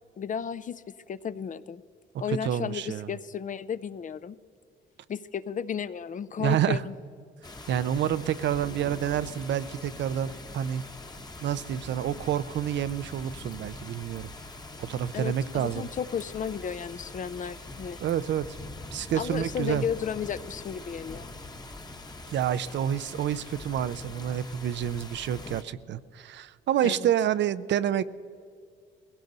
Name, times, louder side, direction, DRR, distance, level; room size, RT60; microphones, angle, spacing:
voice 1, 0.2-1.8 2.2-4.4 5.1-6.9 7.7-7.8 15.1-18.0 19.1-21.3 26.8-27.1, left 7 dB, 40° left, 15 dB, 0.5 m, -34 dB
voice 2, 2.4-3.1 6.4-6.8 7.7-10.8 11.4-14.3 14.8-15.9 18.0-18.5 18.9-19.8 22.3-28.0, right 10 dB, 65° right, 15 dB, 0.5 m, -28 dB
sound 1, 7.4-25.6, left 2 dB, 20° left, 1.1 m, -43 dB
19.5 x 17.0 x 4.0 m, 2.3 s
cardioid pair, 90°, 20 cm